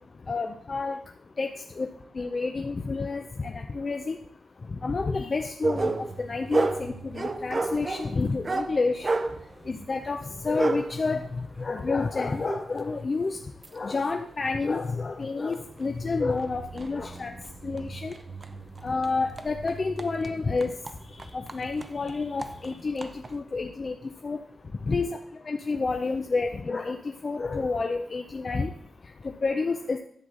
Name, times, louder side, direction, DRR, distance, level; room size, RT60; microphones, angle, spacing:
voice 1, 0.3-1.0 1.4-1.9 2.1-4.2 4.8-9.1 9.7-13.4 13.7-17.3 17.6-18.2 18.8-20.7 21.2-24.0 24.2-24.4 24.9-25.2 25.5-28.7 29.2-30.0, left 4 dB, 35° left, 5 dB, 0.5 m, -29 dB
sound 1, 5.6-13.8 14.3-14.4 15.0-15.1 15.5-23.4, right 3 dB, 30° right, 0.6 m, -33 dB
10.5 x 7.9 x 3.8 m, 0.63 s
wide cardioid pair, 140°, 0 cm